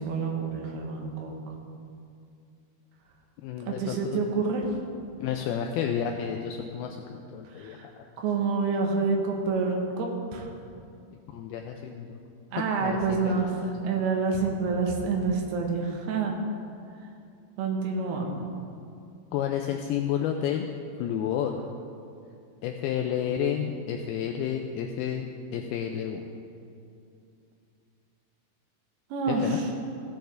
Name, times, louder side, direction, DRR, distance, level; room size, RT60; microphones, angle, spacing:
voice 1, 0.0-1.3 3.7-4.7 7.6-7.9 8.2-10.5 12.5-13.5 13.8-16.3 17.6-18.4 29.1-29.6, right 4 dB, 75° right, 1 dB, 3.1 m, -28 dB
voice 2, 3.4-4.2 5.2-8.1 11.3-12.2 12.5-13.7 19.3-20.7 21.0-21.7 22.6-25.3 25.5-26.2 29.3-29.6, left 9 dB, 85° left, 3 dB, 2.2 m, -31 dB
16.0 x 8.6 x 3.4 m, 2.5 s
omnidirectional pair, 4.9 m